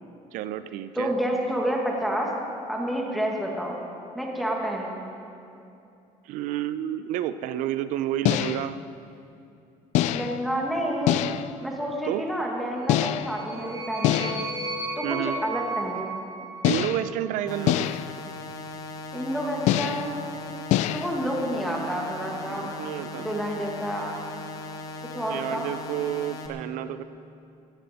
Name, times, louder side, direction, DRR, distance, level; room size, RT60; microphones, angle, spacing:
voice 1, 0.3-1.1 6.3-8.8 12.1-12.2 15.0-15.4 16.6-18.0 22.5-23.3 25.3-27.0, right 12 dB, 80° right, 12 dB, 0.6 m, -30 dB
voice 2, 1.0-2.3 2.7-3.8 4.1-5.0 10.1-11.2 11.6-14.4 14.9-16.1 19.1-20.1 20.9-22.8 23.2-24.2 25.1-25.7, equal, ahead, -2 dB, 1.6 m, -29 dB
sound 1, 8.3-8.8 10.0-10.5 11.1-11.6 12.9-13.5 14.0-14.6 16.6-17.2 17.7-18.2 19.7-20.2 20.7-21.1, left 13 dB, 60° left, 0.4 m, -25 dB
sound 2, 12.9-17.3, right 2 dB, 25° right, 2.6 m, -35 dB
sound 3, 17.5-26.5, left 3 dB, 25° left, 1.0 m, -38 dB
16.0 x 15.5 x 4.2 m, 2.7 s
cardioid pair, 180°, 13 cm